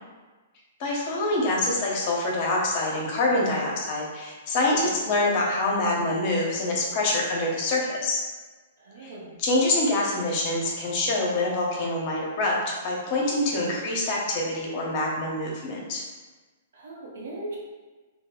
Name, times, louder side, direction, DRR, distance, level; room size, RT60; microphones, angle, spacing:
voice 1, 0.8-8.2 9.0-9.1 9.4-16.0, left 2 dB, 45° left, -2 dB, 1.0 m, -25 dB
voice 2, 4.7-5.0 8.8-9.4 13.5-13.8 16.7-17.6, right 2 dB, 70° right, -3 dB, 1.0 m, -39 dB
3.3 x 2.4 x 3.7 m, 1.3 s
hypercardioid pair, 125°, 0 cm